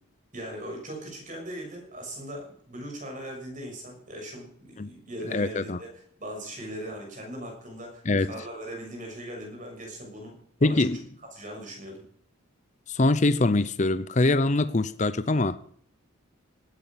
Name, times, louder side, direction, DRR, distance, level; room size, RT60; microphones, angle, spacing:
voice 1, 0.3-10.8 11.3-12.0, right 1 dB, 35° right, 6.7 m, -39 dB
voice 2, 5.3-5.8 8.1-8.3 10.6-11.0 12.9-15.6, left 2 dB, 35° left, 0.6 m, -23 dB
18.5 x 10.0 x 5.9 m
head